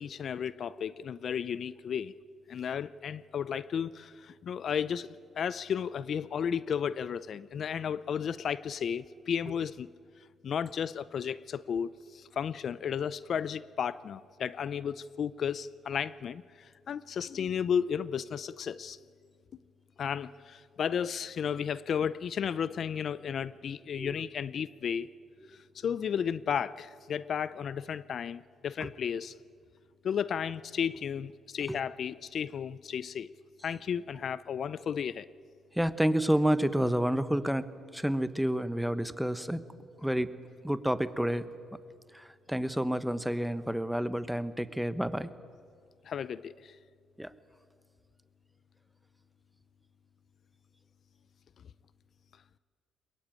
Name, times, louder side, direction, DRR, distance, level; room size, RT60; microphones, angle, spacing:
voice 1, 0.0-2.1 2.5-9.9 10.4-19.0 20.0-25.1 25.5-29.3 30.0-33.3 33.6-35.3 46.0-46.8, left 7 dB, 60° left, 17 dB, 0.5 m, -33 dB
voice 2, 35.7-39.6 40.0-40.3 40.6-41.4 42.1-45.3 47.2-47.3, equal, 5° right, 12 dB, 1.1 m, -29 dB
22.5 x 21.5 x 9.0 m, 2.2 s
cardioid pair, 90°, 0 cm